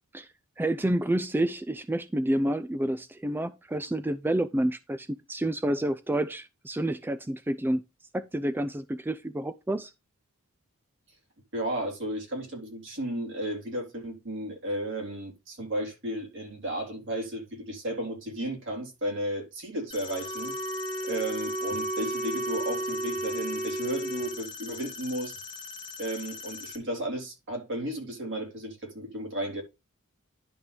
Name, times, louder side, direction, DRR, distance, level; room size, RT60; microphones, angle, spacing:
voice 1, 0.1-7.8 8.1-9.9, right 1 dB, 10° right, 0.4 m, -29 dB
voice 2, 11.5-20.5 21.0-25.3 26.0-29.6, right 1 dB, 60° right, 3.7 m, -34 dB
sound 1, 19.9-26.8, left 4 dB, 25° left, 2.0 m, -42 dB
Wind instrument woodwind instrument, 20.0-24.4, right 1 dB, 40° right, 1.4 m, -33 dB
11.0 x 6.0 x 3.4 m
head